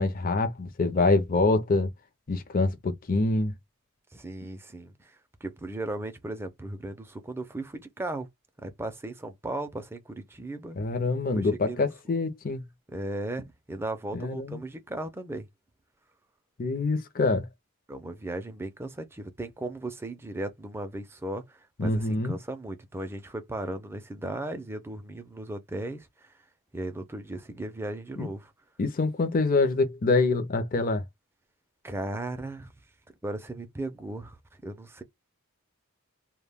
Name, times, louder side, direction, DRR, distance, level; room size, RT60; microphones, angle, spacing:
voice 1, 0.0-1.9 2.3-3.5 10.8-12.6 14.1-14.6 16.6-17.5 21.8-22.4 28.2-28.3 28.8-31.0, left 3 dB, 40° left, 0.5 m, -25 dB
voice 2, 4.1-5.1 5.4-8.3 8.6-10.8 11.3-12.1 12.9-15.5 17.9-26.3 26.7-28.5 31.8-32.7 33.2-34.4 34.6-35.0, right 1 dB, 10° right, 0.4 m, -36 dB
2.2 x 2.2 x 3.3 m
head